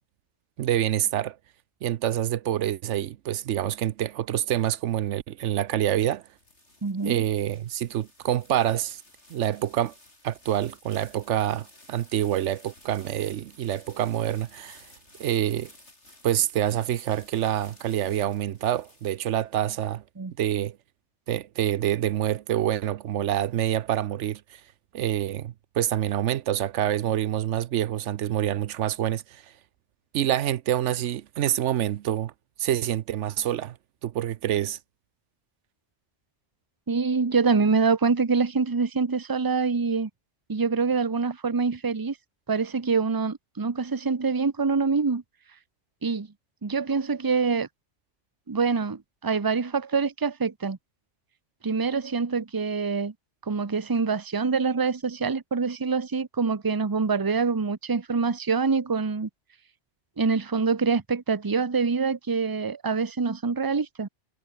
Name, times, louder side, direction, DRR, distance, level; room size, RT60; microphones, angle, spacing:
voice 1, 0.6-1.4 1.8-6.2 7.1-9.0 9.3-9.9 10.2-14.9 15.2-15.7 16.2-20.0 20.4-20.8 21.3-24.6 24.9-29.4 30.1-32.3 32.6-33.8 34.0-34.8, right 11 dB, 85° right, 1.0 m, -26 dB
sound 1, 5.9-19.5, left 1 dB, 70° left, 8.1 m, -55 dB
voice 2, 6.8-7.2 20.2-20.3 36.9-40.1 40.5-42.2 42.5-45.2 46.0-46.3 46.6-47.7 48.5-50.8 51.6-53.1 53.5-59.3 60.2-64.1, right 4 dB, 20° right, 0.8 m, -25 dB
omnidirectional pair, 1.2 m